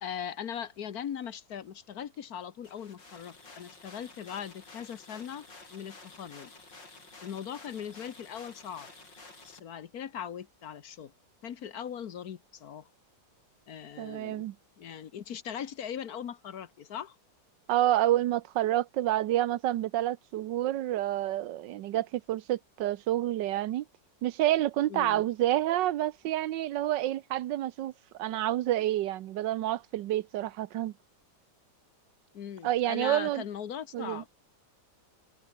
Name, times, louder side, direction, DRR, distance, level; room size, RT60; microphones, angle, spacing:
voice 1, 0.0-6.5 7.2-8.9 9.4-11.1 11.4-12.9 13.7-14.5 14.8-17.2 24.9-25.2 32.3-34.3, left 8 dB, 60° left, 1.5 m, -40 dB
sound 1, 2.6-9.6, left 3 dB, 90° left, 5.8 m, -51 dB
voice 2, 14.0-14.5 17.7-23.8 24.2-27.9 28.2-30.9 32.6-33.4 33.9-34.2, right 13 dB, 85° right, 1.4 m, -28 dB
omnidirectional pair, 1.9 m